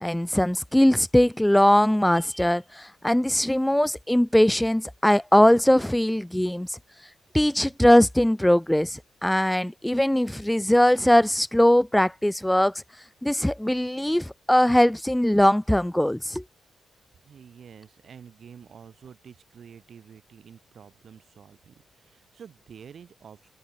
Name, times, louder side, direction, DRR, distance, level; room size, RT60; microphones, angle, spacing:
voice 1, 0.0-6.8 7.3-12.7 13.2-16.4, left 1 dB, 5° left, 0.4 m, -21 dB
voice 2, 17.2-23.5, right 7 dB, 55° right, 5.7 m, -48 dB
cardioid pair, 115°, 0 cm